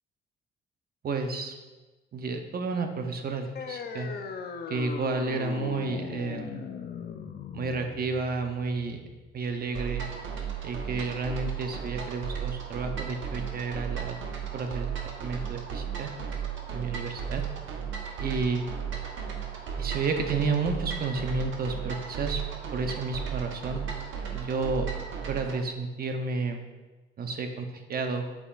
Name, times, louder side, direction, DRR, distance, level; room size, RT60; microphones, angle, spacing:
voice 1, 1.0-1.6 2.1-4.1 4.7-6.6 7.5-9.1 9.3-10.0 10.6-14.2 14.5-14.9 15.2-16.1 16.7-17.4 18.2-18.6 19.8-22.4 22.7-23.8 24.3-24.9 25.3-26.6 27.2-28.3, right 4 dB, 50° right, 5 dB, 0.7 m, -31 dB
sound 1, 3.5-10.6, left 6 dB, 55° left, 0.6 m, -39 dB
sound 2, 9.7-25.6, right 7 dB, 75° right, 1.0 m, -35 dB
8.0 x 5.7 x 2.5 m, 1.2 s
cardioid pair, 90°, 20 cm